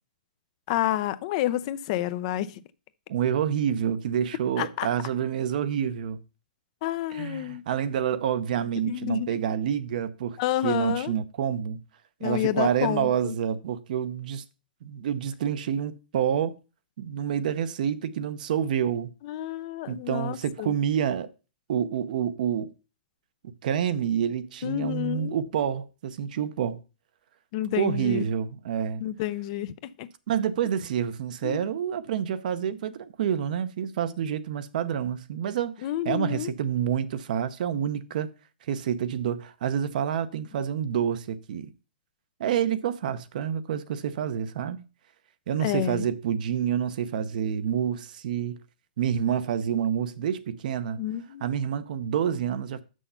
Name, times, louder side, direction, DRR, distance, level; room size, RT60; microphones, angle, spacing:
voice 1, 0.7-2.6 4.6-4.9 6.8-7.6 8.8-9.4 10.4-11.1 12.2-13.3 19.2-20.7 24.6-25.4 27.5-28.2 29.0-30.1 31.4-31.6 35.8-36.5 45.6-46.1 51.0-51.6, left 13 dB, 45° left, 0.5 m, -29 dB
voice 2, 3.1-6.2 7.1-11.8 12.2-14.4 14.8-16.6 17.0-19.1 19.9-21.3 21.7-22.7 23.4-26.8 27.8-29.0 30.3-38.3 38.7-41.7 42.4-44.8 45.5-48.6 49.0-51.0 51.4-52.8, right 9 dB, 60° right, 0.7 m, -28 dB
6.8 x 6.3 x 5.5 m
hypercardioid pair, 140°, 5 cm